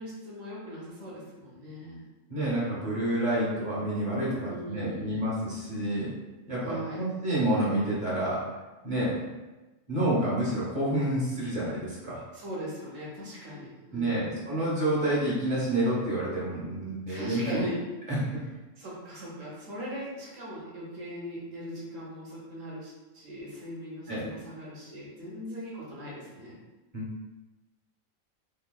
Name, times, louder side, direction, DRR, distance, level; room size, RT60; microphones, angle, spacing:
voice 1, 0.0-2.0 4.5-5.2 6.6-7.0 12.3-14.4 17.1-17.8 18.8-26.6, equal, 75° right, -6 dB, 1.2 m, -40 dB
voice 2, 2.3-6.1 6.5-8.4 8.8-9.2 9.9-12.2 13.9-17.6 18.1-18.4 24.1-24.3 26.9-27.0, right 1 dB, 40° right, -8 dB, 1.2 m, -28 dB
3.1 x 3.0 x 2.3 m, 1.1 s
omnidirectional pair, 1.3 m